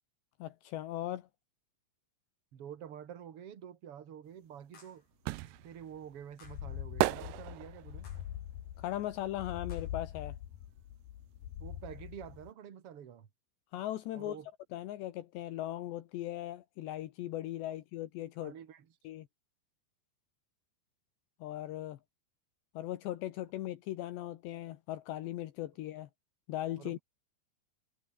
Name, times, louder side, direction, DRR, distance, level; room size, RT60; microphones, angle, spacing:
voice 1, 0.4-1.3 8.8-10.4 13.7-14.4 14.7-18.5 19.0-19.3 21.4-22.0 22.7-26.1 26.5-27.0, left 14 dB, 75° left, 3.4 m, -38 dB
voice 2, 2.5-5.0 5.6-8.1 11.6-13.3 14.1-14.5 18.4-18.9 26.8-27.0, right 9 dB, 50° right, 1.9 m, -48 dB
sound 1, 3.4-3.5 4.7-5.1 6.4-6.8 8.0-8.4 9.7-9.9, left 3 dB, 45° left, 9.5 m, -59 dB
sound 2, 4.4-10.2 10.5-12.1 12.4-12.5, right 19 dB, 80° right, 2.8 m, -37 dB
sound 3, 5.8-5.9 6.3-12.5, left 11 dB, 60° left, 2.7 m, -44 dB
omnidirectional pair, 5.2 m